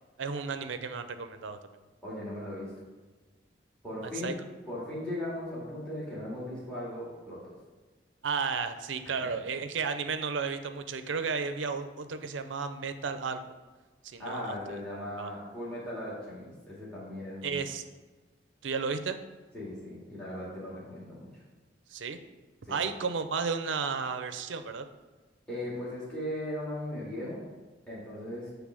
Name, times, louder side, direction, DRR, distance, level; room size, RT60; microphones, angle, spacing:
voice 1, 0.2-1.6 4.0-4.4 8.2-13.4 14.0-14.5 15.2-15.3 17.4-17.8 18.6-19.2 21.9-22.2 22.7-24.9, right 5 dB, 85° right, 9 dB, 0.6 m, -33 dB
voice 2, 2.0-2.9 3.8-4.3 4.7-7.5 14.2-17.6 19.5-21.4 22.6-22.8 25.5-27.4 27.9-28.5, left 1 dB, 5° left, -9 dB, 2.1 m, -38 dB
8.2 x 3.3 x 6.2 m, 1.3 s
head